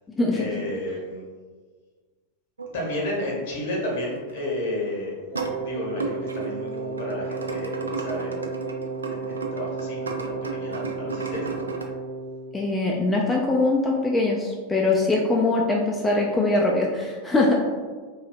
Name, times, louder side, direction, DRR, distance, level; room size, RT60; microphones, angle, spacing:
voice 1, 0.3-1.2 2.7-5.1 5.6-8.5 9.1-11.7, left 1 dB, 55° left, -2 dB, 0.9 m, -32 dB
sound 1, 2.6-2.8 3.7-3.8 4.1-4.5 4.8-5.6 6.0-11.8, right 4 dB, 75° right, 0.3 m, -34 dB
Wind instrument woodwind instrument, 5.3-12.6, right 4 dB, 35° right, 0.6 m, -33 dB
voice 2, 12.5-17.6, left 2 dB, 10° left, -2 dB, 0.3 m, -22 dB
3.2 x 2.7 x 2.6 m, 1.5 s
figure-of-eight pair, 90°, 0 cm